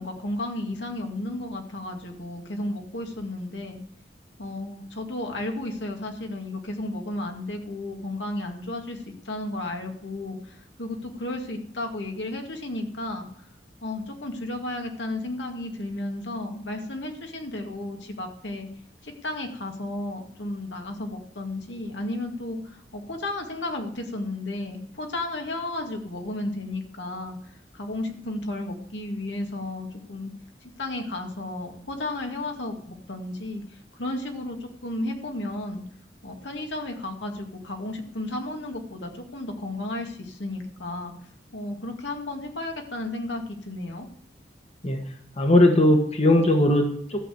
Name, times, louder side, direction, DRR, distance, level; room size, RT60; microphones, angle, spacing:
voice 1, 0.0-3.8 4.4-13.3 13.8-18.7 19.0-30.3 30.6-35.8 36.2-41.1 41.5-44.1, left 1 dB, 80° left, 3 dB, 2.1 m, -33 dB
voice 2, 45.4-47.2, left 1 dB, 35° left, 5 dB, 1.4 m, -19 dB
13.5 x 6.9 x 7.8 m, 0.63 s
head